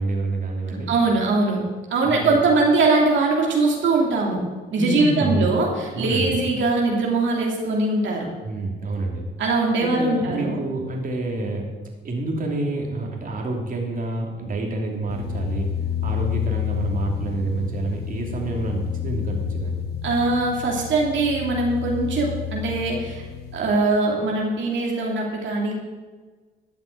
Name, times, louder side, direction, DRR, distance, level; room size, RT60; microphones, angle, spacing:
voice 1, 0.0-0.9 2.0-2.4 4.7-5.5 5.9-6.4 8.4-9.3 9.8-11.7 12.0-15.7 16.0-19.9, right 2 dB, 45° right, 0 dB, 2.8 m, -27 dB
voice 2, 0.9-1.6 1.9-4.4 4.7-8.3 9.4-10.6 20.0-23.2 23.5-25.7, right 3 dB, 70° right, -1 dB, 2.8 m, -21 dB
sound 1, 15.1-23.6, left 9 dB, 50° left, 2.2 m, -30 dB
13.0 x 6.0 x 9.2 m, 1.4 s
cardioid pair, 90°, 20 cm